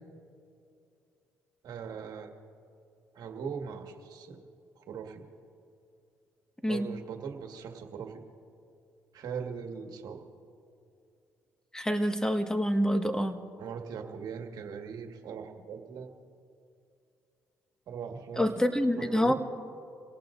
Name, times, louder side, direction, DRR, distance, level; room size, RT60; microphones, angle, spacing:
voice 1, 1.6-2.3 3.1-4.4 4.7-5.2 6.7-8.2 9.1-10.2 13.6-16.1 17.9-18.4 19.1-19.3, right 6 dB, 70° right, 3 dB, 1.7 m, -40 dB
voice 2, 11.7-13.4 18.4-19.3, equal, 10° left, 6 dB, 1.6 m, -27 dB
28.5 x 18.5 x 2.6 m, 2.5 s
supercardioid pair, 60°, 7 cm